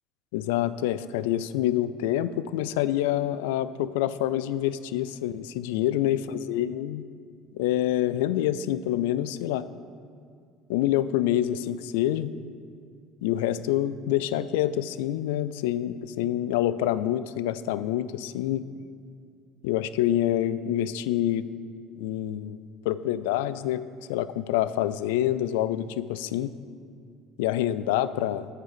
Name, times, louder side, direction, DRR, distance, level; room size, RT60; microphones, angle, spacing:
voice 1, 0.3-7.0 7.5-9.7 10.7-12.3 13.2-18.6 19.6-21.5 22.0-23.8 24.1-26.5 27.4-28.5, left 12 dB, 80° left, 15 dB, 0.4 m, -27 dB
9.5 x 6.6 x 7.6 m, 2.2 s
hypercardioid pair, 70°, 0 cm